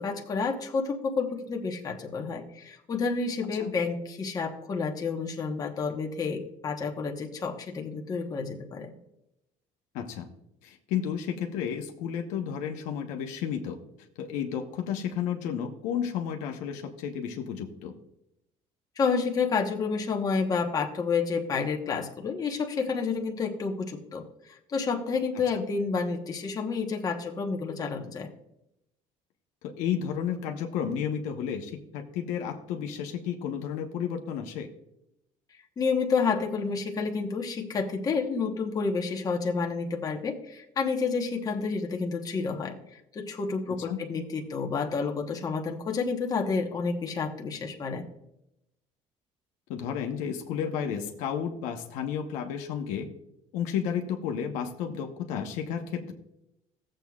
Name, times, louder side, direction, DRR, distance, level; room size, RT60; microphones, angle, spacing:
voice 1, 0.0-8.9 19.0-28.3 35.8-42.8 43.1-48.0, left 5 dB, 30° left, 2 dB, 1.1 m, -30 dB
voice 2, 9.9-10.3 10.6-13.8 14.2-17.9 25.5-25.7 29.6-34.7 43.9-44.0 49.7-53.1 53.5-56.1, left 8 dB, 85° left, 3 dB, 1.0 m, -32 dB
15.5 x 7.7 x 2.4 m, 0.84 s
cardioid pair, 130°, 12 cm